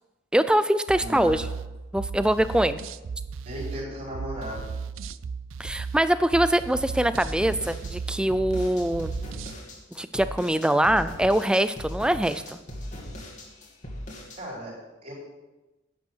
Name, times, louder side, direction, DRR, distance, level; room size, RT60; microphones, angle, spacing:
voice 1, 0.3-1.5 1.9-2.8 5.6-9.1 10.0-12.6, right 1 dB, 5° right, 13 dB, 0.4 m, -23 dB
sound 1, 0.9-9.6, right 5 dB, 70° right, 0.4 m, -36 dB
voice 2, 1.0-1.4 3.4-4.8 14.4-15.1, equal, 45° right, -8 dB, 4.7 m, -36 dB
sound 2, 7.1-14.4, equal, 40° left, 2.2 m, -39 dB
10.5 x 8.5 x 6.3 m, 1.1 s
head